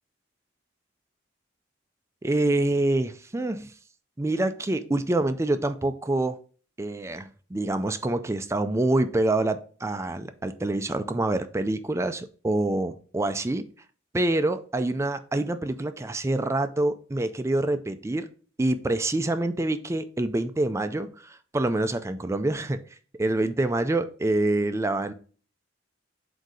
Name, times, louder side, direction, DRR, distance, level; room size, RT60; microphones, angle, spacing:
voice 1, 2.2-3.7 4.2-6.4 6.8-13.7 14.1-18.3 18.6-22.8 23.2-25.1, right 2 dB, 15° right, 10 dB, 0.4 m, -26 dB
7.7 x 2.7 x 4.9 m, 0.40 s
head